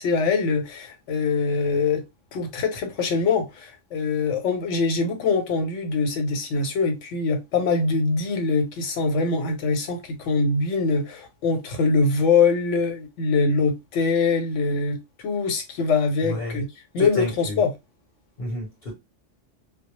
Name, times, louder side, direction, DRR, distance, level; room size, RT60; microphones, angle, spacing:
voice 1, 0.0-2.0 2.3-15.0 15.2-16.7 16.9-17.7, left 4 dB, 80° left, 1.0 m, -23 dB
voice 2, 16.2-16.6 17.0-17.6 18.4-18.9, left 1 dB, 45° left, 0.8 m, -31 dB
2.1 x 2.0 x 2.9 m
omnidirectional pair, 1.3 m